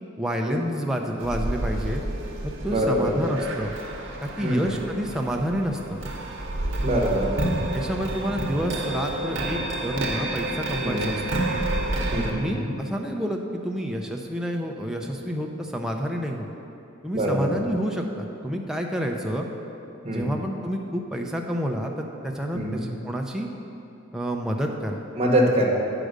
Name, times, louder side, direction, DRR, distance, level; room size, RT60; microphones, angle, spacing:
voice 1, 0.2-2.0 2.4-3.7 4.2-6.0 7.7-11.4 12.3-16.5 17.0-19.5 20.1-23.5 24.1-25.0, equal, 5° right, 1 dB, 0.5 m, -29 dB
sound 1, 1.2-12.3, right 1 dB, 60° right, 1.0 m, -29 dB
voice 2, 2.7-3.3 4.4-4.7 6.8-7.3 10.8-11.1 12.1-12.7 17.1-17.5 20.0-20.3 22.5-22.8 25.2-25.7, equal, 30° right, -2 dB, 1.2 m, -24 dB
9.2 x 4.9 x 6.5 m, 2.9 s
head